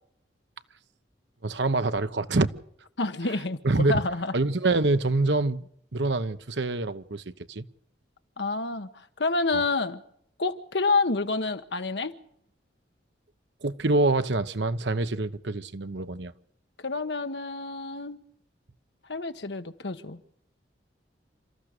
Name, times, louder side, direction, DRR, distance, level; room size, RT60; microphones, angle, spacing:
voice 1, 1.4-2.5 3.3-3.4 3.6-4.0 4.3-7.6 9.5-9.6 13.6-16.3, right 2 dB, 80° right, 1.1 m, -26 dB
voice 2, 3.0-4.3 8.4-10.0 10.4-12.1 16.8-18.2 19.1-20.2, left 3 dB, 75° left, 1.3 m, -28 dB
29.0 x 14.0 x 6.7 m
head